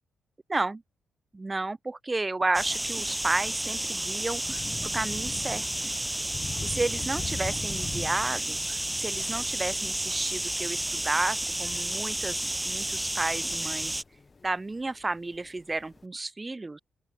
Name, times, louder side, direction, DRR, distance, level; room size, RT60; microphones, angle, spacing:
voice 1, 0.5-0.8 1.3-4.6 4.9-5.9 6.6-14.0 14.4-16.8, right 2 dB, 25° right, 1.0 m, -32 dB
sound 1, 2.5-14.0, right 1 dB, 10° right, 1.6 m, -31 dB
Thunder / Rain, 3.6-16.0, left 4 dB, 35° left, 5.1 m, -43 dB
open air
hypercardioid pair, 40°, 0 cm